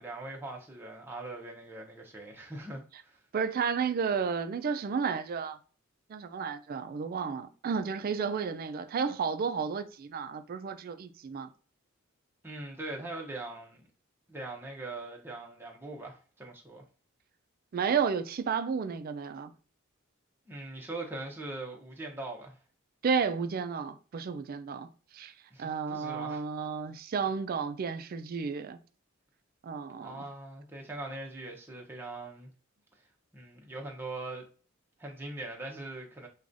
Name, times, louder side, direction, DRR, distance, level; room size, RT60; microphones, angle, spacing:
voice 1, 0.0-3.2 12.4-13.8 14.3-16.8 20.5-22.6 25.5-26.4 30.0-32.5 33.3-34.4 35.0-36.3, right 2 dB, 10° right, 0.6 m, -41 dB
voice 2, 3.3-5.6 6.1-11.5 17.7-19.5 23.0-24.9 25.1-25.3 25.6-28.8 29.6-30.2, right 6 dB, 45° right, 0.3 m, -32 dB
4.7 x 2.3 x 2.6 m
head